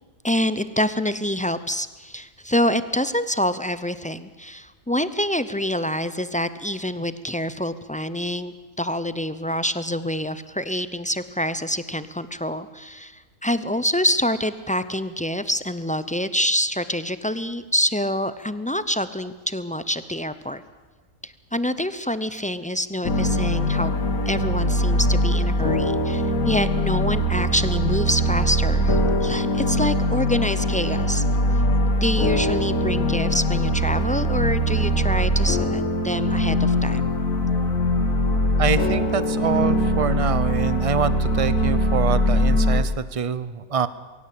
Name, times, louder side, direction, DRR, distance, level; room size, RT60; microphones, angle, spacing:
voice 1, 0.2-20.6 21.2-23.9 24.3-31.2 32.0-37.0, equal, 15° left, 13 dB, 0.3 m, -26 dB
sound 1, 23.0-42.8, equal, 70° left, 2.2 m, -22 dB
voice 2, 38.6-43.9, right 6 dB, 30° right, 15 dB, 0.8 m, -25 dB
23.0 x 17.0 x 8.5 m, 1.3 s
omnidirectional pair, 1.5 m